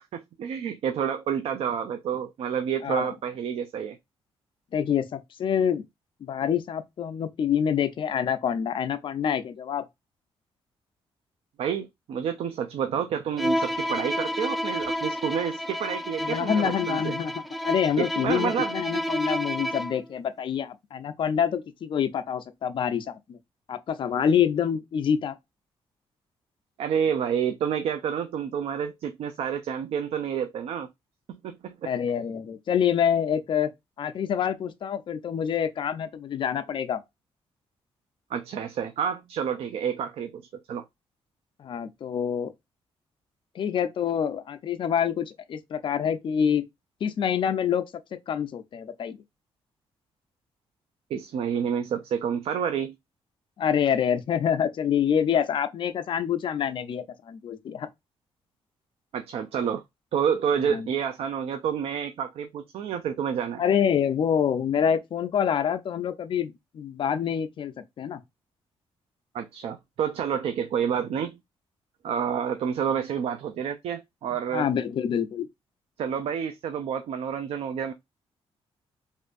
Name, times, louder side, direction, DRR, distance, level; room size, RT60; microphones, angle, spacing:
voice 1, 0.0-4.0 11.6-17.1 18.0-18.7 26.8-30.9 31.3-31.9 38.3-40.4 40.7-40.8 51.1-52.9 59.1-59.8 60.1-63.6 69.3-71.4 72.0-74.7 76.0-77.9, right 8 dB, 70° right, 0.5 m, -29 dB
voice 2, 4.7-5.8 6.2-9.8 16.2-17.3 17.6-23.4 23.7-25.3 31.8-33.7 34.0-37.0 41.6-42.5 43.5-46.6 47.0-47.8 48.3-49.2 53.6-57.9 60.7-60.9 63.6-68.2 74.5-75.5, left 8 dB, 50° left, 0.6 m, -26 dB
Bowed string instrument, 13.4-20.0, equal, ahead, 0.3 m, -30 dB
3.5 x 2.6 x 2.5 m
cardioid pair, 135°, 10 cm